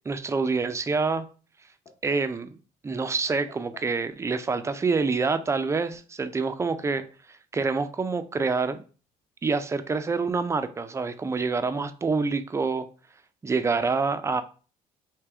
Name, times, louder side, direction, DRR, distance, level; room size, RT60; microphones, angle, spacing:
voice 1, 0.1-1.3 2.0-2.6 2.8-7.1 7.5-8.8 9.4-12.9 13.4-14.4, right 4 dB, 15° right, 0.3 m, -26 dB
sound 1, 1.9-2.3 3.5-4.0 5.0-5.5 6.5-7.2 8.2-8.7 8.9-9.0 9.9-10.3, left 5 dB, 30° left, 1.0 m, -52 dB
3.5 x 2.8 x 3.3 m
cardioid pair, 110°, 17 cm